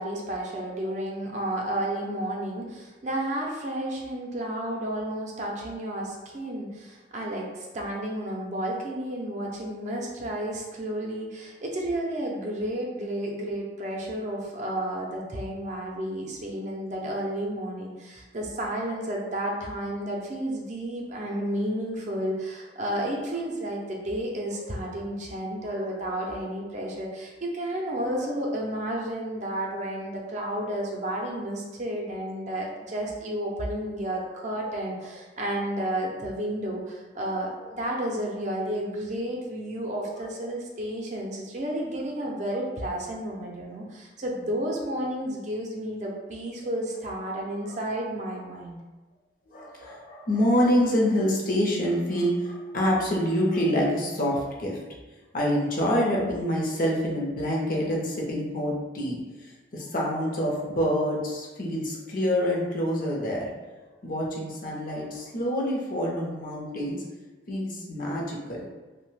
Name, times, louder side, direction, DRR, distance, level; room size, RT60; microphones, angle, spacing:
voice 1, 0.0-48.8, right 1 dB, 40° right, -1 dB, 0.5 m, -32 dB
voice 2, 25.7-26.1 28.0-28.3 34.6-34.7 37.6-37.7 40.4-40.5 47.7-47.8 49.5-54.8 55.3-59.2 59.7-63.5 64.0-67.0 67.5-68.6, equal, 50° left, -2 dB, 0.7 m, -27 dB
2.8 x 2.1 x 3.1 m, 1.2 s
head